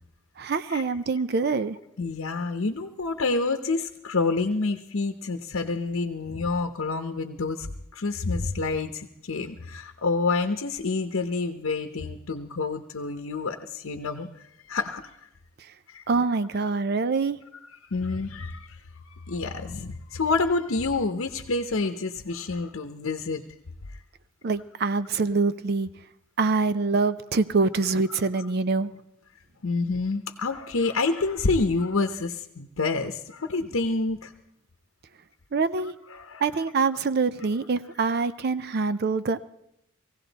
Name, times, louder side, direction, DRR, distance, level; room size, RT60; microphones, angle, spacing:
voice 1, 0.4-1.8 16.1-17.4 24.4-25.9 26.4-28.9 35.5-35.9 36.4-39.4, right 4 dB, 50° right, 13 dB, 0.5 m, -25 dB
voice 2, 2.0-7.7 7.9-14.3 14.7-15.0 15.9-16.0 17.5-23.4 28.1-28.5 29.6-34.3 36.1-36.6, left 3 dB, 80° left, 6 dB, 0.8 m, -28 dB
19.0 x 16.0 x 4.0 m, 0.81 s
head